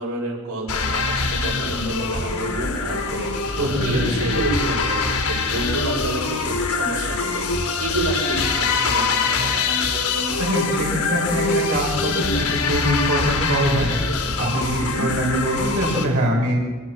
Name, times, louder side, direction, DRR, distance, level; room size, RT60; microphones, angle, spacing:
voice 1, 0.0-3.3 3.6-7.4 7.8-9.7 14.7-15.0, right 2 dB, 90° right, -1 dB, 7.3 m, -29 dB
sound 1, 0.7-16.0, left 4 dB, 80° left, 4.8 m, -24 dB
voice 2, 3.6-4.3 10.4-13.9 14.4-16.6, right 1 dB, 75° right, -3 dB, 6.4 m, -23 dB
25.0 x 23.5 x 6.3 m, 1.4 s
head